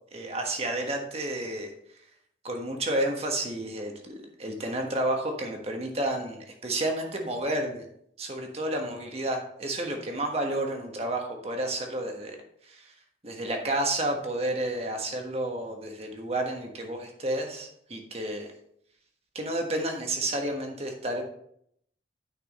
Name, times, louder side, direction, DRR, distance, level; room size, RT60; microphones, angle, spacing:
voice 1, 0.1-1.7 2.4-7.9 8.2-12.4 12.7-12.9 13.2-18.5 19.3-21.2, right 1 dB, 35° right, 3 dB, 1.4 m, -31 dB
9.1 x 5.9 x 4.2 m, 0.69 s
head